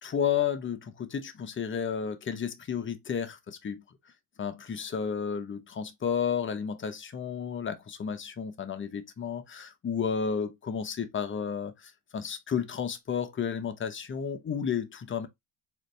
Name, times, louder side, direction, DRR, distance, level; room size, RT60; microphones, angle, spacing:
voice 1, 0.0-3.8 4.4-15.3, left 7 dB, 25° left, 0.7 m, -32 dB
4.0 x 2.6 x 3.1 m
cardioid pair, 110°, 47 cm